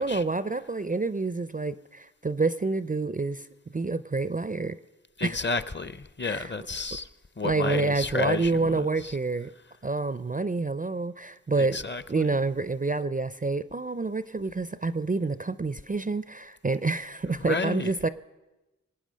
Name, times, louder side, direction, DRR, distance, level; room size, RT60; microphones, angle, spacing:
voice 1, 0.0-3.5 3.7-4.8 5.2-5.4 6.2-6.5 7.4-9.5 9.8-11.8 12.1-18.1, right 3 dB, 25° right, 0.4 m, -28 dB
voice 2, 5.2-7.1 7.4-9.2 11.6-12.2 17.4-17.9, left 4 dB, 35° left, 0.6 m, -31 dB
24.0 x 8.8 x 6.3 m
wide cardioid pair, 80°, 33 cm